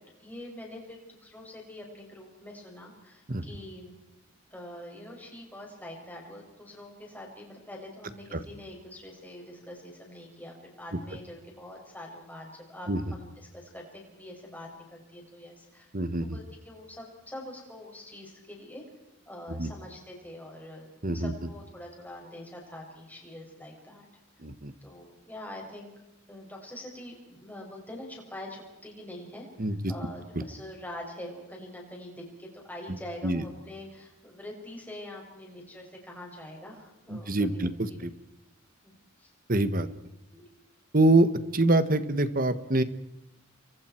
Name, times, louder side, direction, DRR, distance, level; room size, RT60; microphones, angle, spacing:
voice 1, 0.2-3.9 4.5-15.9 16.2-18.8 19.3-24.0 24.8-25.9 26.3-38.0 38.8-39.3 40.3-40.5, left 1 dB, 10° left, -1 dB, 6.7 m, -44 dB
voice 2, 15.9-16.4 19.5-19.7 21.0-21.3 24.4-24.7 29.6-29.9 33.2-33.4 37.1-38.1 39.5-39.9 40.9-42.8, right 2 dB, 40° right, 12 dB, 1.5 m, -25 dB
30.0 x 24.0 x 4.6 m, 0.95 s
head